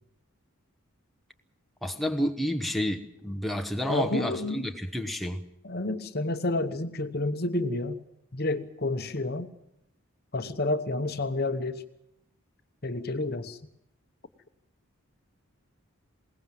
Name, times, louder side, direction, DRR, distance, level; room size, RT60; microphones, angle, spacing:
voice 1, 1.8-5.4, equal, ahead, 4 dB, 1.0 m, -30 dB
voice 2, 3.9-4.7 5.6-8.0 8.3-9.5 10.3-11.8 12.8-13.6, left 2 dB, 45° left, 9 dB, 1.0 m, -30 dB
21.0 x 18.5 x 7.6 m, 0.80 s
head